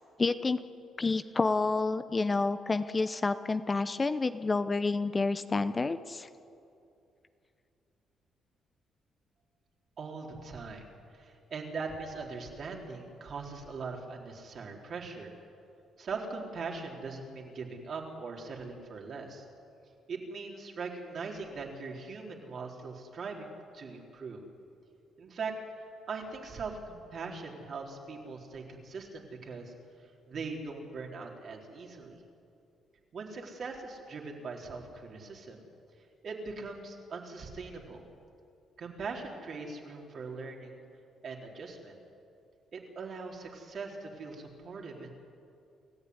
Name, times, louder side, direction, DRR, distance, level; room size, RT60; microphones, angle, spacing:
voice 1, 0.2-0.6 1.0-6.3, left 3 dB, 25° left, 11 dB, 0.9 m, -29 dB
voice 2, 10.0-15.3 16.0-19.4 20.1-24.5 25.2-25.5 26.1-29.7 30.3-32.2 33.1-35.7 36.2-38.0 38.8-40.8 41.2-41.9 42.7-45.1, right 4 dB, 55° right, 0 dB, 4.1 m, -41 dB
28.5 x 14.0 x 9.7 m, 2.6 s
cardioid pair, 90°, 0 cm